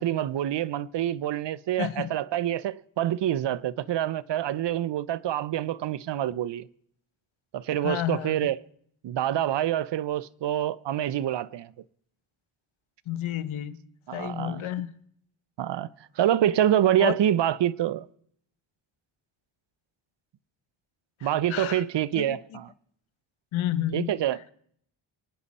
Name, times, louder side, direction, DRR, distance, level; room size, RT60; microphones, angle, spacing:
voice 1, 0.0-6.7 7.5-8.6 9.0-11.7 14.1-14.7 15.6-15.9 16.2-18.1 21.2-22.7 23.9-24.5, right 11 dB, 60° right, 0.7 m, -26 dB
voice 2, 1.8-2.1 7.8-8.5 13.1-13.8 14.1-14.9 17.0-17.2 21.2-21.8 22.2-22.4 23.5-24.1, left 12 dB, 80° left, 1.1 m, -31 dB
23.5 x 9.9 x 4.2 m
cardioid pair, 75°, 47 cm